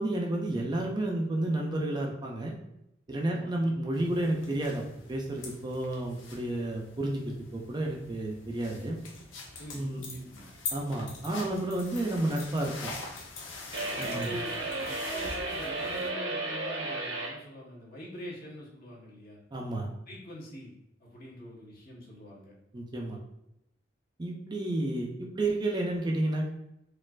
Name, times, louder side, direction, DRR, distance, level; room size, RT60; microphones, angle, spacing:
voice 1, 0.0-2.5 3.1-4.8 5.1-9.0 9.7-10.0 10.7-12.9 14.0-14.3 19.5-19.9 22.7-23.2 24.2-25.1 25.3-26.5, right 1 dB, 20° right, 0 dB, 0.4 m, -31 dB
voice 2, 3.2-3.7 9.6-10.5 13.9-14.5 14.8-19.4 20.1-20.7 21.0-22.5, equal, 50° left, -4 dB, 1.0 m, -44 dB
sound 1, 3.9-16.1, left 3 dB, 85° left, 0.6 m, -44 dB
sound 2, 13.7-17.4, right 2 dB, 80° right, 0.8 m, -34 dB
4.2 x 2.4 x 2.3 m, 0.82 s
head